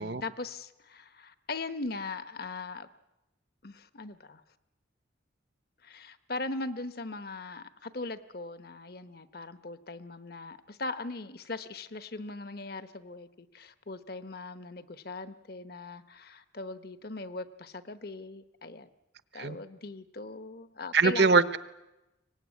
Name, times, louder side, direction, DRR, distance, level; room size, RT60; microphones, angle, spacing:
voice 1, 0.0-2.9 3.6-4.4 5.8-18.9 19.3-21.3, left 3 dB, 50° left, 12 dB, 1.0 m, -40 dB
voice 2, 20.9-21.6, right 4 dB, 60° right, 13 dB, 1.0 m, -23 dB
23.5 x 19.0 x 9.7 m, 0.96 s
head